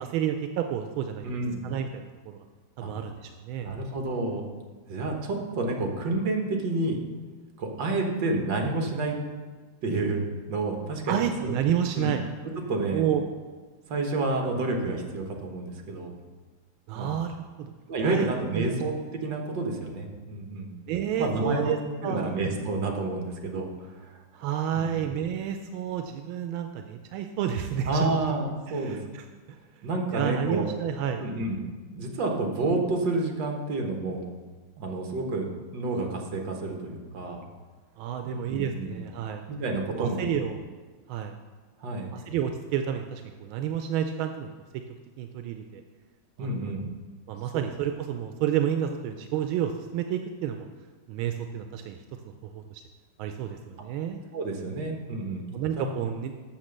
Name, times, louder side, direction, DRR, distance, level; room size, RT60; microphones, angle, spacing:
voice 1, 0.0-1.2 1.6-2.4 2.8-3.8 11.1-12.2 12.9-13.2 16.9-17.3 17.6-17.7 18.0-18.3 18.5-18.8 20.9-21.8 22.0-22.3 24.4-28.1 28.7-29.2 30.1-31.2 38.0-39.4 39.9-40.6 41.1-41.3 42.1-44.5 45.2-45.8 46.4-46.7 47.3-50.7 51.1-52.0 52.4-52.8 53.2-54.2 55.5-56.3, right 9 dB, 90° right, 6 dB, 1.4 m, -30 dB
voice 2, 1.2-1.6 2.8-2.9 3.6-4.4 4.9-7.0 7.6-9.2 9.8-11.6 11.9-12.1 12.7-13.0 13.9-16.1 16.9-17.1 17.9-18.9 19.2-20.8 21.2-21.8 22.0-24.2 24.7-25.1 27.9-29.0 29.8-30.7 31.2-31.6 31.9-34.3 34.8-35.5 35.7-37.4 38.2-39.0 39.5-40.3 41.8-42.1 46.4-46.9 47.5-47.6 54.3-55.4 55.7-56.0, right 2 dB, 65° right, 2 dB, 1.9 m, -29 dB
7.4 x 6.7 x 6.5 m, 1.4 s
omnidirectional pair, 2.2 m